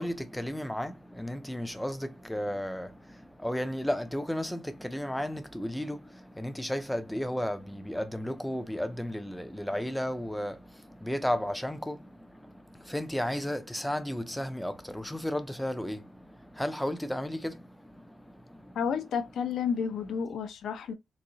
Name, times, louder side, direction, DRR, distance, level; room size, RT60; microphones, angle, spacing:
voice 1, 0.0-18.8, equal, 5° left, 0.4 m, -34 dB
voice 2, 18.7-20.9, left 6 dB, 80° left, 0.6 m, -31 dB
4.0 x 2.7 x 2.8 m
wide cardioid pair, 170°, 0 cm